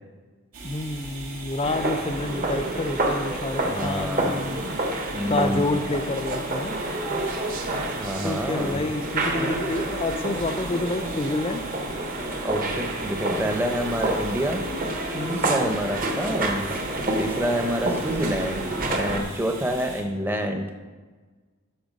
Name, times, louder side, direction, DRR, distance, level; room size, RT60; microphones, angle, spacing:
sound 1, 0.5-20.0, right 2 dB, 75° right, 2.2 m, -40 dB
voice 1, 0.6-4.6 5.3-6.8 8.2-11.7 15.1-15.4, left 2 dB, 25° left, 9 dB, 0.5 m, -28 dB
sound 2, 1.6-19.2, right 2 dB, 40° right, 1.1 m, -28 dB
voice 2, 3.6-4.3 5.1-5.8 8.0-8.9 12.4-14.6 15.2-16.7 17.2-18.6 18.9-20.7, equal, 10° right, 4 dB, 0.8 m, -27 dB
12.5 x 6.0 x 5.3 m, 1.4 s
head